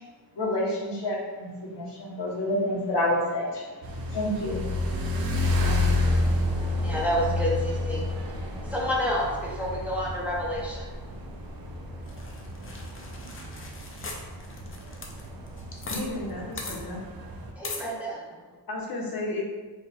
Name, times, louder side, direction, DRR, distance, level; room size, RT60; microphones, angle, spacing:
voice 1, 0.4-3.7 4.1-4.6, left 1 dB, 85° left, -3 dB, 1.0 m, -28 dB
sound 1, 3.8-17.5, left 2 dB, 60° right, 0.6 m, -30 dB
voice 2, 6.0-15.7 17.5-18.6, equal, 5° right, -5 dB, 0.7 m, -33 dB
sound 2, 12.1-16.0 16.3-16.4 16.6-16.8 17.6-17.9, left 3 dB, 30° left, 0.5 m, -39 dB
voice 3, 15.9-17.0 18.7-19.4, left 2 dB, 60° left, -2 dB, 0.9 m, -33 dB
4.5 x 2.3 x 3.4 m, 1.3 s
wide cardioid pair, 145°, 40 cm